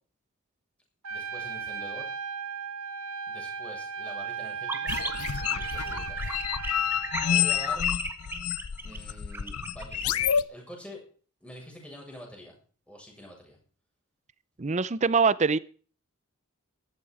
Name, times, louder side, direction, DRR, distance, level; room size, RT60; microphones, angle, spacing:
Trumpet, 1.0-7.8, right 6 dB, 85° right, 1.6 m, -36 dB
voice 1, 1.1-2.1 3.3-4.9 5.5-6.3 7.3-7.8 8.8-11.0 11.4-12.5 12.9-13.6, equal, 5° left, 7.5 m, -46 dB
sound 1, 4.7-10.3, right 2 dB, 10° right, 1.7 m, -36 dB
sound 2, 4.9-10.4, left 8 dB, 80° left, 0.6 m, -29 dB
voice 2, 14.6-15.6, right 5 dB, 30° right, 0.6 m, -23 dB
15.5 x 13.5 x 4.9 m
head